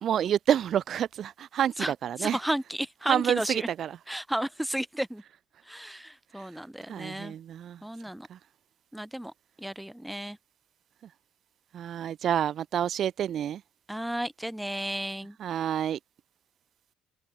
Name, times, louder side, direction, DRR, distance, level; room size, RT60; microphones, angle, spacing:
voice 1, 0.0-2.4 3.1-3.9 6.9-7.8 8.3-8.4 11.7-13.6 15.4-16.0, right 10 dB, 55° right, 1.8 m, -28 dB
voice 2, 2.2-3.7 4.1-5.2 5.7-7.3 7.8-8.3 8.9-9.3 9.6-10.4 13.9-15.4, equal, 5° right, 1.3 m, -33 dB
open air
supercardioid pair, 80°, 0 cm